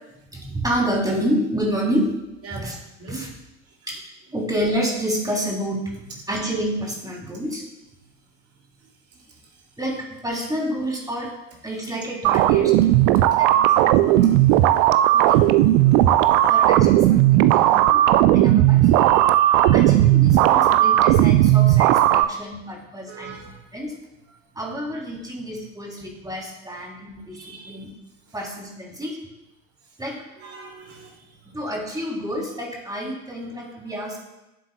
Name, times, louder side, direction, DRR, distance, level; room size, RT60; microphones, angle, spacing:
voice 1, 0.3-2.1 2.5-2.8 3.1-3.3 3.9-4.0 4.3-5.9 6.3-7.6 9.8-11.3 11.6-12.7 13.3-14.7 15.1-16.2 16.5-18.1 18.3-18.9 19.7-23.4 23.7-24.0 24.5-27.9 28.3-29.2 30.0-30.2 31.5-34.2, equal, 10° right, -1 dB, 3.1 m, -29 dB
sound 1, 12.2-22.2, right 13 dB, 60° right, 0.5 m, -16 dB
voice 2, 19.1-19.7 20.5-20.6 23.1-23.5 27.3-27.8 30.4-31.1, right 4 dB, 45° right, 1 dB, 2.5 m, -41 dB
11.0 x 7.6 x 2.3 m, 0.94 s
figure-of-eight pair, 60°, 32 cm